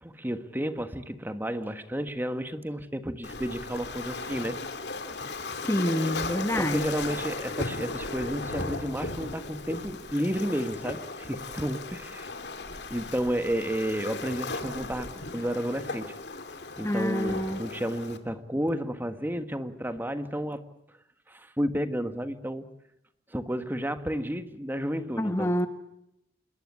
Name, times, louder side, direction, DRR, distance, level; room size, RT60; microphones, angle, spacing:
voice 1, 0.0-4.6 6.5-12.3 12.7-16.2 16.8-20.6 21.3-22.6 23.3-25.5, equal, 10° right, 9 dB, 1.4 m, -32 dB
Waves surf, 3.2-18.2, left 3 dB, 65° left, 2.6 m, -36 dB
voice 2, 5.6-6.8 16.8-17.6 25.2-25.7, left 1 dB, 15° left, 9 dB, 1.2 m, -27 dB
27.0 x 22.0 x 9.7 m, 0.83 s
head